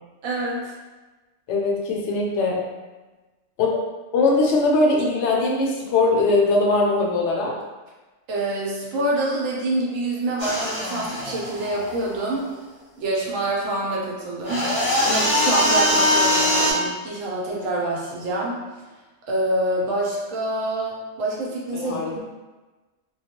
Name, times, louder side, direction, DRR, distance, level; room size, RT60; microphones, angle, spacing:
voice 1, 0.2-0.7 8.3-12.5 13.0-14.7 15.0-18.6 19.3-22.3, right 1 dB, 90° right, -3 dB, 1.1 m, -26 dB
voice 2, 1.5-2.6 3.6-3.7 4.1-7.5 21.7-22.1, left 3 dB, 70° left, -2 dB, 0.8 m, -20 dB
sound 1, 10.4-12.4 14.4-16.7, left 1 dB, 30° left, 0.7 m, -22 dB
2.3 x 2.2 x 2.8 m, 1.2 s
omnidirectional pair, 1.3 m